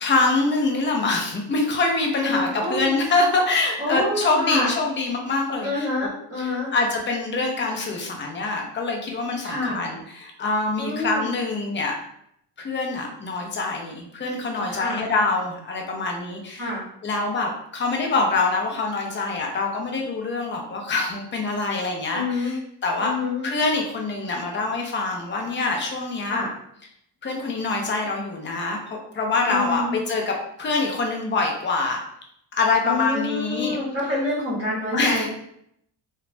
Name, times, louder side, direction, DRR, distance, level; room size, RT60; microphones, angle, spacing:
voice 1, 0.0-5.9 6.4-12.0 12.6-16.7 17.0-23.1 23.4-26.5 27.2-32.0 32.5-33.8 34.9-35.3, left 3 dB, 25° left, 1 dB, 0.4 m, -25 dB
voice 2, 2.2-2.9 3.8-4.7 5.6-6.7 9.4-9.8 10.8-11.3 14.7-15.0 16.6-16.8 22.1-22.6 23.0-23.4 26.3-26.5 29.5-29.9 32.8-35.3, left 2 dB, 35° right, -8 dB, 0.8 m, -27 dB
3.0 x 2.1 x 2.4 m, 0.73 s
cardioid pair, 155°, 45 cm